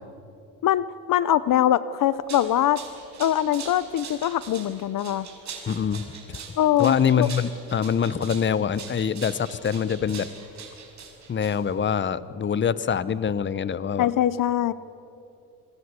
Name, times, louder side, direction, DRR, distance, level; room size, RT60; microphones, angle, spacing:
voice 1, 0.6-2.8 3.2-5.3 6.6-7.3 14.0-14.7, left 11 dB, 60° left, 16 dB, 0.8 m, -22 dB
sound 1, 2.0-11.9, right 6 dB, 50° right, 5.5 m, -42 dB
voice 2, 5.7-6.4 6.8-10.3 11.3-14.1, left 7 dB, 30° left, 16 dB, 0.9 m, -25 dB
28.0 x 22.0 x 8.3 m, 2.7 s
cardioid pair, 105°, 37 cm